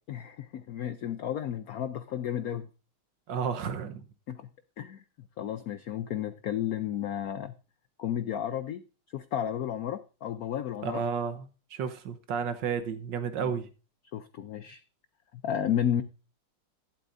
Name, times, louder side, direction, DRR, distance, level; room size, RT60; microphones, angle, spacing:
voice 1, 0.1-2.7 4.3-4.5 4.8-5.0 5.4-7.6 8.0-8.8 9.1-11.0 13.4-13.6 14.1-14.8 15.4-16.0, left 10 dB, 85° left, 0.8 m, -32 dB
voice 2, 3.3-4.0 10.8-13.7, right 6 dB, 65° right, 1.6 m, -32 dB
12.0 x 11.5 x 2.6 m
omnidirectional pair, 2.3 m